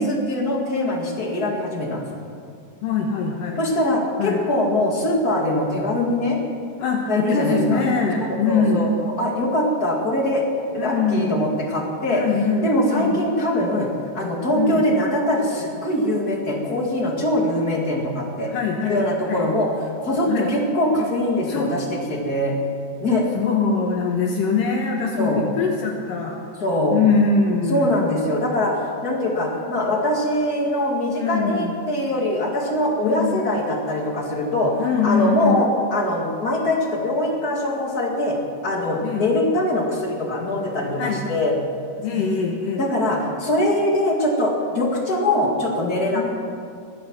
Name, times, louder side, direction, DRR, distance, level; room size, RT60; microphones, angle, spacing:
voice 1, 0.0-2.1 3.6-6.4 7.1-7.8 8.2-10.4 10.7-12.2 12.6-13.9 14.1-18.5 18.8-19.7 20.0-22.5 23.0-23.2 25.2-25.4 26.6-27.0 27.7-34.8 35.0-38.4 38.6-41.5 42.1-42.2 42.8-46.3, left 1 dB, 35° left, 0 dB, 1.8 m, -22 dB
voice 2, 2.8-3.6 4.2-4.4 6.8-8.9 10.8-11.4 12.1-13.2 14.5-14.8 18.5-19.5 20.3-20.5 21.5-21.7 23.4-26.4 26.9-28.0 31.2-31.9 33.0-33.4 34.8-35.6 39.0-39.3 41.0-41.2 42.0-42.9 46.2-46.3, left 4 dB, 70° left, 1 dB, 2.5 m, -23 dB
21.0 x 10.5 x 6.2 m, 2.3 s
omnidirectional pair, 4.4 m